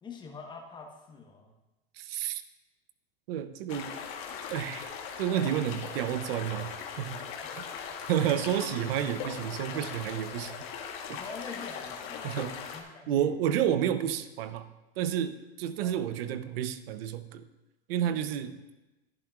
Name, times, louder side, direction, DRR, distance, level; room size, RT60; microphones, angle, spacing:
voice 1, 0.0-1.5 7.4-7.7 10.9-13.3 15.8-16.0, left 5 dB, 15° left, 1 dB, 1.0 m, -45 dB
voice 2, 2.0-2.4 3.3-3.9 4.5-4.9 5.2-6.7 7.0-7.2 7.6-7.7 8.1-10.5 11.1-11.2 12.2-12.5 13.1-14.7 15.0-17.4 17.9-18.5, right 10 dB, 65° right, 12 dB, 0.7 m, -30 dB
sound 1, 3.7-12.8, left 6 dB, 40° left, 1.2 m, -40 dB
11.0 x 11.0 x 2.4 m, 1.0 s
supercardioid pair, 140°, 31 cm